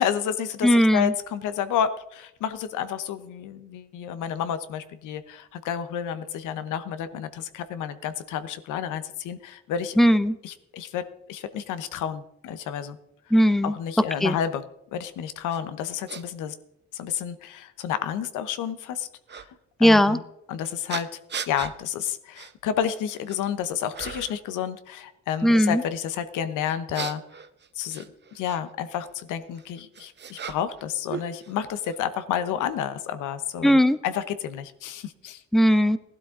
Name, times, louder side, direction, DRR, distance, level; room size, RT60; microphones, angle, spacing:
voice 1, 0.0-10.0 10.4-13.0 13.6-14.6 14.9-16.5 16.9-19.1 19.3-19.4 19.8-20.2 20.5-21.1 21.5-27.2 27.8-28.0 28.3-35.4, left 9 dB, 90° left, 12 dB, 1.0 m, -30 dB
voice 2, 0.6-1.1 10.0-10.4 13.3-13.8 14.2-14.4 19.8-20.2 25.4-25.8 33.6-34.0 35.5-36.0, equal, ahead, 13 dB, 0.6 m, -18 dB
sound 1, 15.5-15.6 16.1-16.2 17.1-17.2 19.3-19.5 20.9-21.7 22.3-22.5 23.0-23.5 23.9-24.4 26.6-28.6 29.5-30.8 31.1-32.0, right 7 dB, 35° right, 0.9 m, -37 dB
15.5 x 12.0 x 3.7 m, 0.83 s
cardioid pair, 90°, 30 cm